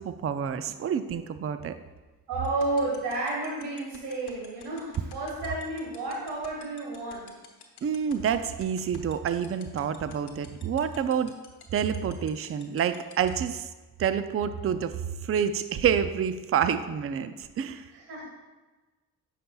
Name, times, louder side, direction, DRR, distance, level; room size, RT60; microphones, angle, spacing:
voice 1, 0.0-1.7 7.8-11.3 11.7-13.7 14.0-14.9 15.2-17.8, right 8 dB, 35° right, 11 dB, 0.4 m, -28 dB
voice 2, 2.3-7.3 17.9-18.2, right 2 dB, 85° right, -2 dB, 1.4 m, -31 dB
sound 1, 2.4-13.3, left 10 dB, 70° left, 1.0 m, -48 dB
9.2 x 5.7 x 2.3 m, 1.2 s
supercardioid pair, 50°, 40 cm